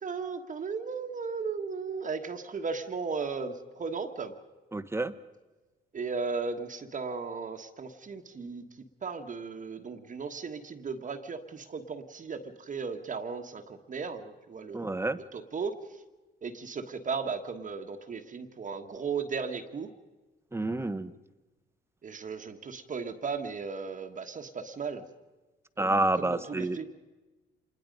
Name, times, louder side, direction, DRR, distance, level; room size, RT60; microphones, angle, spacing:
voice 1, 0.0-4.3 5.9-8.7 9.0-15.0 15.3-15.7 16.4-19.9 22.0-25.1 25.8-26.9, right 5 dB, 40° right, 5 dB, 1.4 m, -36 dB
voice 2, 4.7-5.1 14.7-15.2 20.5-21.1 25.8-26.8, right 2 dB, 15° right, 12 dB, 0.9 m, -28 dB
26.5 x 20.5 x 5.3 m, 1.2 s
cardioid pair, 90°, 20 cm